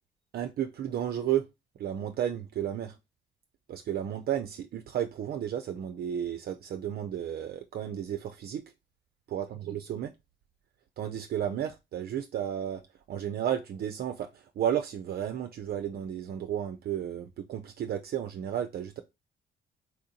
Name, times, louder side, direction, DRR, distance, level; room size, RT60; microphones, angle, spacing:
voice 1, 0.3-1.4 1.8-3.0 3.7-8.6 9.3-10.1 11.0-12.8 13.1-19.0, right 10 dB, 50° right, 0.4 m, -33 dB
4.3 x 2.5 x 2.7 m
cardioid pair, 90°, 20 cm